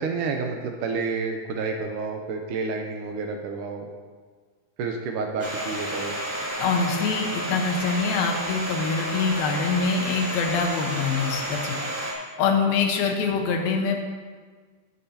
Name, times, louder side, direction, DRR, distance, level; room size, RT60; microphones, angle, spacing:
voice 1, 0.0-3.9 4.8-6.2, right 4 dB, 75° right, 3 dB, 2.1 m, -29 dB
Domestic sounds home sounds, 5.4-12.1, right 1 dB, 20° right, 1.9 m, -31 dB
voice 2, 6.6-11.8 12.4-14.0, left 5 dB, 85° left, 2 dB, 3.0 m, -24 dB
17.0 x 8.6 x 2.9 m, 1.5 s
omnidirectional pair, 4.1 m